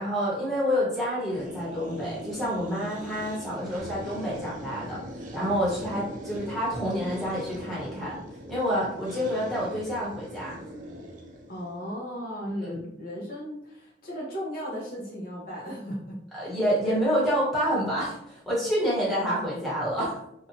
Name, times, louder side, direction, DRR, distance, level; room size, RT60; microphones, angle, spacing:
voice 1, 0.0-5.0 5.3-8.2 8.5-10.5 12.5-12.9 16.3-20.2, equal, ahead, -7 dB, 0.9 m, -28 dB
sound 1, 1.3-11.8, equal, 45° right, 0.4 m, -40 dB
voice 2, 11.5-16.1 16.4-16.5 16.8-17.0, equal, 50° left, -4 dB, 0.6 m, -36 dB
2.7 x 2.1 x 2.6 m, 0.76 s
head